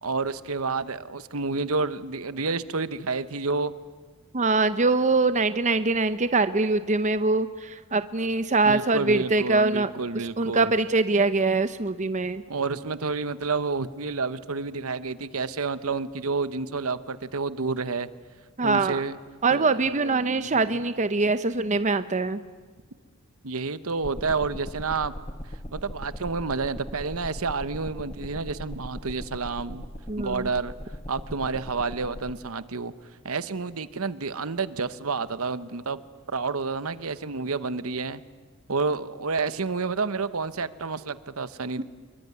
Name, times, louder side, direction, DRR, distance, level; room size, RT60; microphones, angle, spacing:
voice 1, 0.0-3.7 8.6-10.7 12.5-18.1 18.6-19.2 19.5-20.8 23.4-25.1 25.7-29.8 30.2-30.7 31.1-32.9 33.2-36.0 36.3-38.2 38.7-41.8, right 4 dB, 70° right, 14 dB, 1.0 m, -29 dB
voice 2, 4.3-9.9 10.4-12.4 18.6-19.0 19.4-22.4 30.1-30.5 41.8-41.9, right 3 dB, 35° right, 11 dB, 0.8 m, -23 dB
sound 1, 24.0-32.3, equal, 25° left, 1.8 m, -39 dB
26.5 x 23.0 x 9.7 m, 1.5 s
head